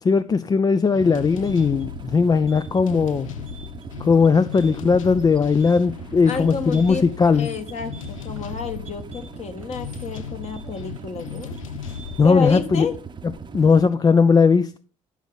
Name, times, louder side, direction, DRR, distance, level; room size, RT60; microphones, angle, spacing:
voice 1, 0.0-3.3 4.0-7.5 12.2-12.9 13.5-14.8, left 5 dB, 25° left, 0.4 m, -18 dB
sound 1, 0.9-13.7, left 10 dB, 80° left, 0.4 m, -37 dB
sound 2, 1.0-13.9, right 5 dB, 25° right, 0.8 m, -39 dB
sound 3, 1.4-12.4, right 4 dB, 85° right, 1.4 m, -50 dB
voice 2, 6.2-7.1 7.3-11.6 12.2-12.9, left 4 dB, 40° left, 1.6 m, -30 dB
12.0 x 5.8 x 4.0 m
figure-of-eight pair, 50°, 17 cm